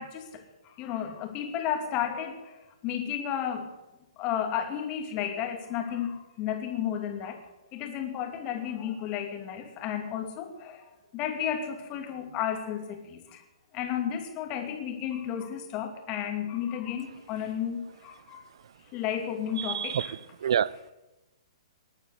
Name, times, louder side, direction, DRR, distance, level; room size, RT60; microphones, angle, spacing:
voice 1, 0.0-2.6 2.8-3.7 4.2-7.4 7.7-10.8 11.1-13.4 13.7-18.4 18.9-20.1, left 9 dB, 30° left, 5 dB, 2.6 m, -33 dB
voice 2, 19.6-20.9, right 9 dB, 60° right, 22 dB, 0.5 m, -29 dB
19.5 x 8.9 x 8.0 m, 1.0 s
figure-of-eight pair, 120°, 3 cm